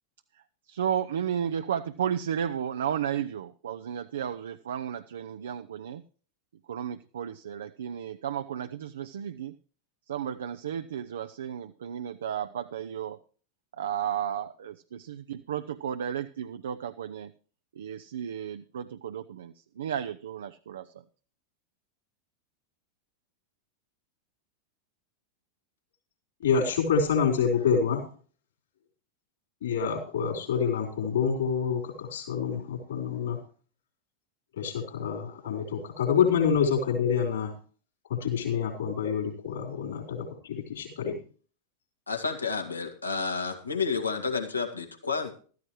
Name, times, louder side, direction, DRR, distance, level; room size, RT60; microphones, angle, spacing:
voice 1, 0.7-6.0 6.7-9.5 10.1-13.2 13.8-17.3 17.8-20.9, right 9 dB, 65° right, 10 dB, 0.6 m, -33 dB
voice 2, 26.4-28.0 29.6-33.4 34.6-37.5 38.1-41.2, left 6 dB, 60° left, -1 dB, 4.2 m, -27 dB
voice 3, 42.1-45.3, left 4 dB, 80° left, 3 dB, 2.1 m, -30 dB
14.0 x 13.5 x 3.2 m, 0.41 s
figure-of-eight pair, 90°, 0 cm